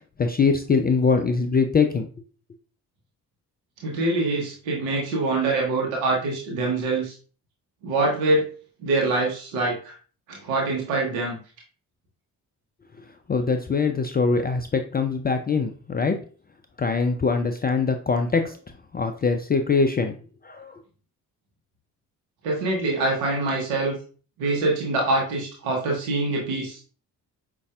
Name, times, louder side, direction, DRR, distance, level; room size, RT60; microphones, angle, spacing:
voice 1, 0.2-2.1 13.3-16.2 16.8-18.6 18.9-20.1 20.4-20.8, left 4 dB, 20° left, 6 dB, 0.4 m, -22 dB
voice 2, 3.8-7.1 7.8-8.4 8.8-9.9 10.3-11.4 22.4-24.0 24.4-26.8, right 2 dB, 75° right, -1 dB, 1.1 m, -24 dB
5.1 x 2.7 x 2.4 m, 0.39 s
hypercardioid pair, 40°, 48 cm